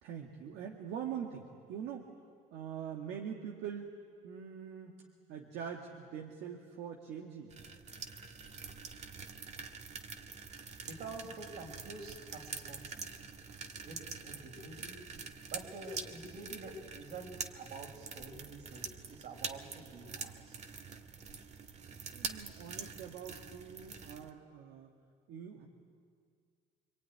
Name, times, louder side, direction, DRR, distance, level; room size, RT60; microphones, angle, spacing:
voice 1, 0.0-2.1 2.5-3.9 4.2-5.0 5.3-7.5 22.1-24.9 25.3-25.7, right 8 dB, 85° right, 1 dB, 1.9 m, -43 dB
sound 1, 7.5-24.3, right 5 dB, 40° right, 1.6 m, -45 dB
voice 2, 10.8-13.1 13.8-15.0 15.5-20.7, right 3 dB, 70° right, 1 dB, 5.8 m, -48 dB
26.5 x 23.0 x 9.6 m, 2.1 s
cardioid pair, 110°, 17 cm